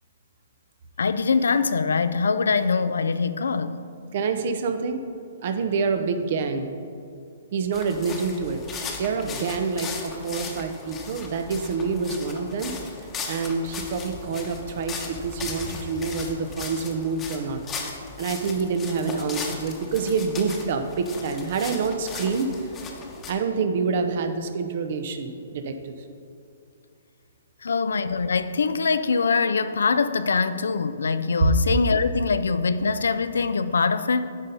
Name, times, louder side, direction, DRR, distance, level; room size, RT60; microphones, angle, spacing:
voice 1, 1.0-3.8 27.6-34.3, left 5 dB, 80° left, 0.4 m, -23 dB
voice 2, 4.1-5.0 5.4-6.7 7.5-8.6 9.0-12.7 13.3-17.6 18.2-22.7 23.3-26.0 31.4-31.5, right 5 dB, 55° right, 0.8 m, -27 dB
sound 1, 7.7-23.3, left 4 dB, 20° left, 1.0 m, -37 dB
9.7 x 4.2 x 5.3 m
hypercardioid pair, 135°, 0 cm